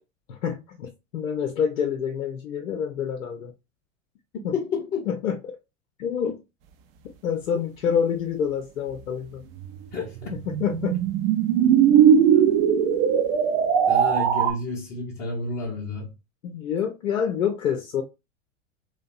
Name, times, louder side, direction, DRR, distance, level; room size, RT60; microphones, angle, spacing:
voice 1, 0.3-3.5 4.4-4.6 5.1-5.6 6.0-6.4 7.2-9.4 10.3-11.0 16.4-18.0, left 7 dB, 80° left, 0.6 m, -27 dB
voice 2, 4.3-5.1 6.2-6.3 9.9-10.3 13.9-16.1, left 3 dB, 25° left, 0.6 m, -30 dB
sound 1, 9.6-14.5, right 8 dB, 50° right, 0.5 m, -19 dB
2.6 x 2.2 x 2.3 m
figure-of-eight pair, 90°, 40 cm